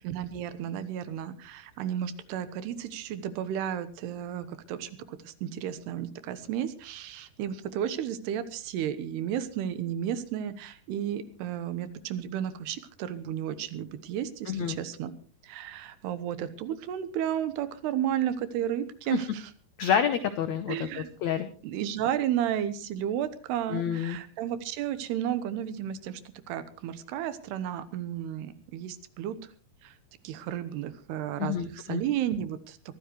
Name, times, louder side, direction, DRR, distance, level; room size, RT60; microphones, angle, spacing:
voice 1, 0.0-15.1 15.4-19.5 20.7-21.1 21.6-26.2 26.5-29.4 29.8-29.9 30.2-32.8, right 10 dB, 90° right, 13 dB, 3.1 m, -33 dB
voice 2, 14.5-14.8 19.1-19.2 19.8-21.5 23.7-24.2 31.4-32.0, left 8 dB, 85° left, 9 dB, 1.6 m, -28 dB
23.0 x 14.5 x 3.2 m, 0.40 s
omnidirectional pair, 4.6 m